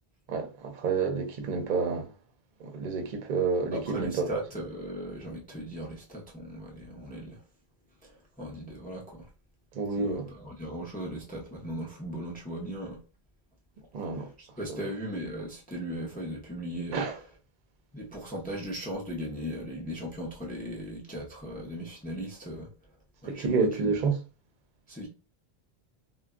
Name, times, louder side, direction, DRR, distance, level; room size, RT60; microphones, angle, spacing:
voice 1, 0.3-2.1 2.6-4.3 9.7-10.3 13.9-14.3 14.7-14.9 16.9-17.2 23.2-24.2, right 4 dB, 55° right, 0.7 m, -29 dB
voice 2, 3.7-7.4 8.0-9.3 10.0-13.0 14.1-17.0 17.9-22.7 23.2-23.9 24.9-25.1, right 1 dB, 10° left, 0.4 m, -38 dB
2.2 x 2.1 x 3.5 m
omnidirectional pair, 1.1 m